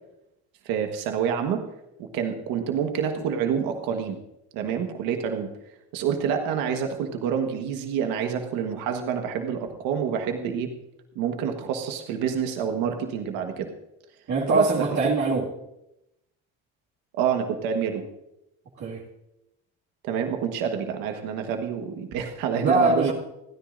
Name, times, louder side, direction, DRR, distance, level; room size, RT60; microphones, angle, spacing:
voice 1, 0.7-1.6 2.0-4.2 4.5-5.5 5.9-10.7 11.1-13.7 14.5-15.0 17.2-18.1 20.0-23.1, right 7 dB, 85° right, 5 dB, 1.5 m, -27 dB
voice 2, 14.3-15.5 18.8-19.0 22.6-23.1, right 2 dB, 55° right, -3 dB, 2.2 m, -23 dB
29.0 x 10.5 x 2.6 m, 0.87 s
supercardioid pair, 85°, 35 cm